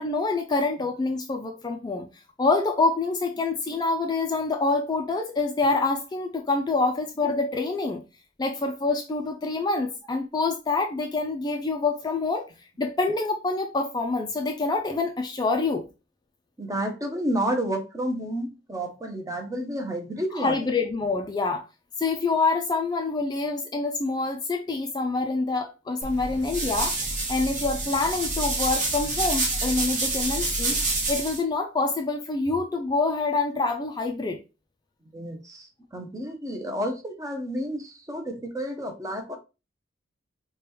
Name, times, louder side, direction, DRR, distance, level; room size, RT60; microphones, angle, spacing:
voice 1, 0.0-2.1 2.4-8.0 8.4-12.5 12.8-15.9 20.3-21.6 22.0-30.8 31.1-34.4, left 3 dB, 20° left, 0.4 m, -26 dB
voice 2, 16.6-20.7 35.1-39.4, right 1 dB, 15° right, 0.7 m, -30 dB
sound 1, 26.0-31.4, right 2 dB, 40° right, 1.1 m, -28 dB
4.9 x 2.3 x 3.0 m
head